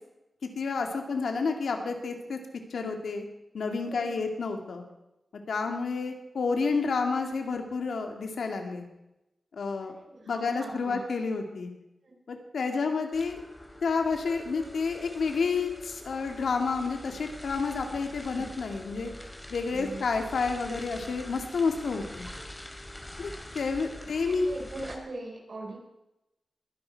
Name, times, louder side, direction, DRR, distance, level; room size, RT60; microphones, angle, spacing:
voice 1, 0.4-2.4 2.7-3.3 3.5-4.8 5.5-8.9 9.5-9.9 10.3-11.7 12.3-13.4 13.8-19.1 19.5-22.3 23.2-24.5, left 4 dB, 85° left, 4 dB, 2.4 m, -30 dB
voice 2, 3.9-4.3 5.6-5.8 9.8-11.0 12.0-12.1 18.4-18.5 19.7-20.0 22.3-22.4 23.9-25.8, right 2 dB, 60° right, -1 dB, 6.0 m, -42 dB
sound 1, 13.1-25.0, left 1 dB, 15° left, 2.6 m, -45 dB
22.0 x 11.0 x 4.8 m, 0.93 s
wide cardioid pair, 75°, 0 cm